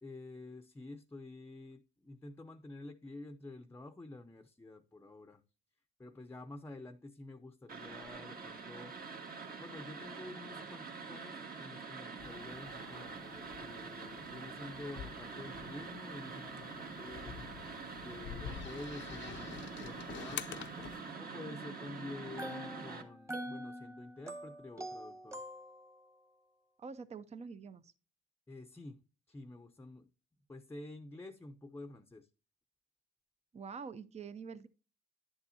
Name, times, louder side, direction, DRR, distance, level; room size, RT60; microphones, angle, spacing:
voice 1, 0.0-5.4 6.0-8.9 9.6-17.4 18.0-20.7 21.2-25.4 28.5-29.0 29.3-30.1 30.5-32.3, left 2 dB, 10° left, 0.7 m, -49 dB
sound 1, 7.7-23.0, right 4 dB, 50° right, 1.7 m, -45 dB
sound 2, 12.2-21.1, left 9 dB, 70° left, 0.6 m, -48 dB
sound 3, 22.2-26.1, equal, 15° right, 1.3 m, -45 dB
voice 2, 26.8-27.9 33.5-34.7, right 5 dB, 35° right, 0.6 m, -46 dB
10.5 x 7.1 x 2.7 m
cardioid pair, 90°, 20 cm